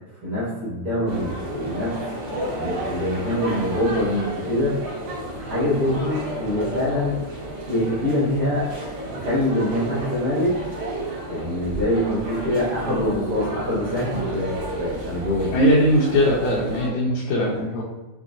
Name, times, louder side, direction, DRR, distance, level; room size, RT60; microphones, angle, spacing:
voice 1, 0.2-4.8 5.4-7.2 7.7-8.7 9.1-10.6 11.3-15.5, left 1 dB, 85° right, -9 dB, 0.9 m, -24 dB
sound 1, 1.1-16.9, right 1 dB, 65° right, 2.2 m, -32 dB
voice 2, 15.5-17.8, equal, 80° left, -5 dB, 2.0 m, -20 dB
5.8 x 2.1 x 2.5 m, 1.1 s
omnidirectional pair, 3.4 m